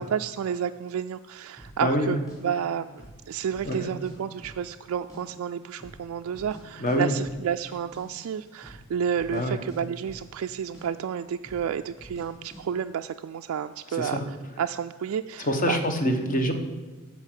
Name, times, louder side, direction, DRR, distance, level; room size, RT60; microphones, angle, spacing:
voice 1, 0.0-2.9 3.3-15.8, right 8 dB, 75° right, 7 dB, 0.3 m, -31 dB
sound 1, 1.6-1.8 2.3-2.4 2.9-3.2 3.5-4.1 4.4-5.2 5.5-5.6 5.8-6.6 6.9-7.0 7.2-7.4 7.7-8.0 8.5-8.8 9.1-10.5 10.7-10.9 11.4-11.7 12.0-12.3 12.5-12.6, equal, 15° left, 4.0 m, -46 dB
voice 2, 1.8-2.2 3.6-3.9 6.8-7.1 9.3-9.6 13.9-14.2 15.4-16.5, equal, 40° left, 6 dB, 1.2 m, -25 dB
12.5 x 4.5 x 8.1 m, 1.2 s
head